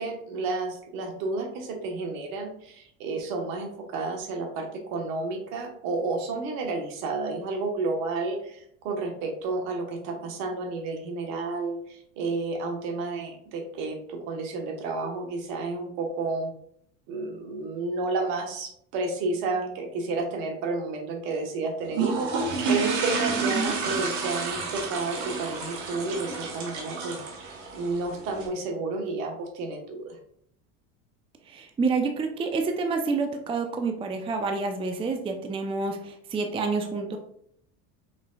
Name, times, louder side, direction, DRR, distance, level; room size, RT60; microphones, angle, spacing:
voice 1, 0.0-16.5 17.1-27.5 27.7-30.2, right 3 dB, 65° right, 3 dB, 1.2 m, -31 dB
sound 1, 21.9-28.5, right 4 dB, 85° right, 1.2 m, -30 dB
voice 2, 31.5-37.2, right 4 dB, 15° right, 5 dB, 0.4 m, -28 dB
5.1 x 3.6 x 2.3 m, 0.68 s
supercardioid pair, 100°, 37 cm